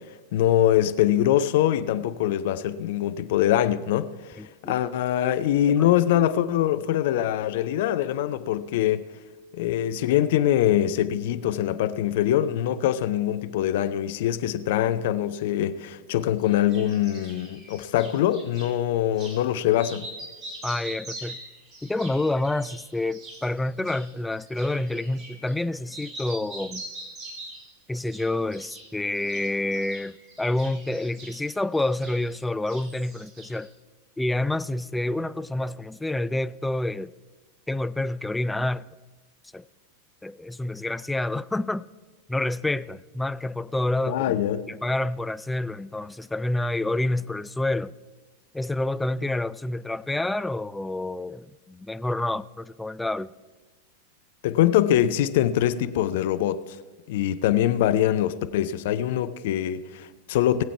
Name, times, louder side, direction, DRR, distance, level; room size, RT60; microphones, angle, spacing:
voice 1, 0.3-9.0 9.5-20.1 44.1-44.7 54.4-56.6 57.1-60.6, left 11 dB, 55° left, 0.6 m, -23 dB
voice 2, 4.4-4.8 20.6-21.4 21.8-26.8 27.9-33.7 34.2-37.1 37.7-38.9 39.5-39.6 40.2-41.9 42.3-44.4 44.7-47.9 48.5-53.3, left 2 dB, 5° left, 0.3 m, -28 dB
sound 1, 16.4-18.7 19.1-19.4 19.7-25.6 25.9-27.7 28.1-28.9 29.1-32.4 32.7-33.7, right 1 dB, 30° right, 2.6 m, -43 dB
19.5 x 7.7 x 4.6 m
figure-of-eight pair, 90°, 0 cm